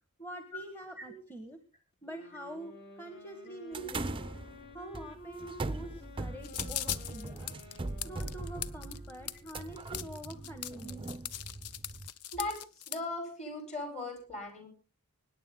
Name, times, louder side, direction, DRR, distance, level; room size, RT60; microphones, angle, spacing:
voice 1, 0.2-1.6 2.0-4.2 4.7-7.5 8.0-11.1, right 1 dB, 10° left, 7 dB, 1.5 m, -45 dB
Sax Alto - F minor, 2.0-9.7, left 2 dB, 50° left, 2.7 m, -52 dB
sound 1, 3.7-12.1, right 2 dB, 25° right, 0.6 m, -40 dB
sound 2, 6.4-13.0, left 11 dB, 85° left, 0.8 m, -39 dB
voice 2, 12.9-14.7, left 2 dB, 30° left, 6 dB, 5.1 m, -38 dB
25.0 x 10.0 x 3.8 m, 0.36 s
head